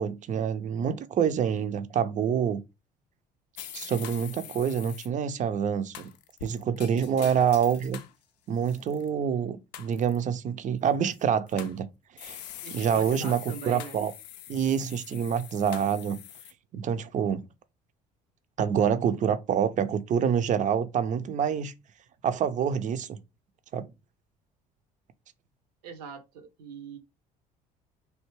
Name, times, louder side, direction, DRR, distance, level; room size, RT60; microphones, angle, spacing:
voice 1, 0.0-2.6 3.7-6.1 6.4-8.0 8.5-11.9 12.2-12.4 12.7-14.1 14.5-16.2 16.7-17.4 18.6-21.7 22.2-23.2 23.7-23.9, right 8 dB, 35° right, 0.5 m, -27 dB
sound 1, 3.6-5.1 5.9-8.1 8.6-9.1 9.7-10.2 11.1-11.8 12.2-16.5, left 11 dB, 80° left, 0.4 m, -44 dB
voice 2, 12.6-14.0 25.8-27.0, right 6 dB, 75° right, 0.7 m, -42 dB
3.3 x 2.6 x 3.0 m
hypercardioid pair, 55°, 21 cm